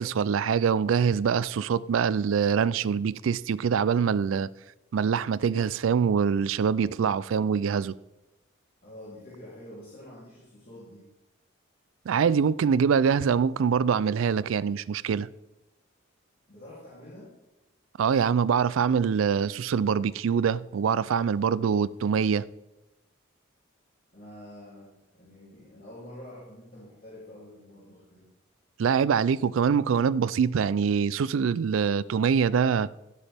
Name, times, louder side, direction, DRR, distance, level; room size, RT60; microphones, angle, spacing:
voice 1, 0.0-4.5 4.9-7.9 12.1-15.3 18.0-22.5 28.8-32.9, right 6 dB, 80° right, 0.4 m, -24 dB
voice 2, 8.8-11.1 16.5-17.4 24.1-28.3, left 1 dB, 45° left, 3.1 m, -47 dB
16.5 x 8.3 x 3.5 m
head